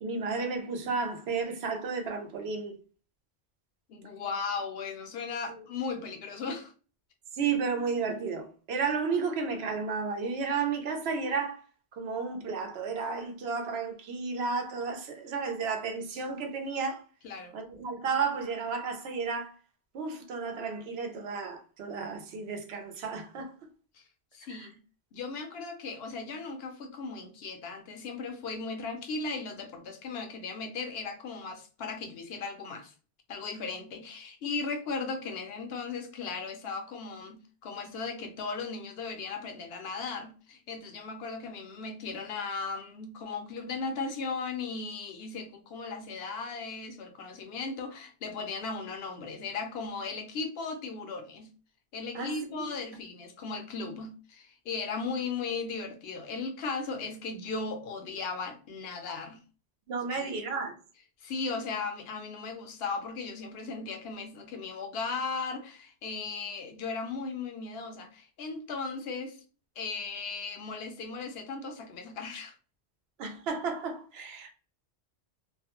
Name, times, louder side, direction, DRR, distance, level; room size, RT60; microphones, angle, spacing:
voice 1, 0.0-2.8 5.5-5.6 7.3-11.6 11.9-17.0 17.5-19.6 19.9-23.5 24.5-24.7 52.1-52.7 59.9-60.7 73.2-74.5, right 5 dB, 75° right, 0.8 m, -32 dB
voice 2, 3.9-6.7 17.2-17.6 23.9-24.0 24.3-24.8 25.1-32.9 33.3-51.5 51.9-59.4 60.1-60.4 61.2-69.4 69.8-72.5, left 4 dB, 70° left, 0.7 m, -37 dB
2.4 x 2.1 x 2.8 m
omnidirectional pair, 1.1 m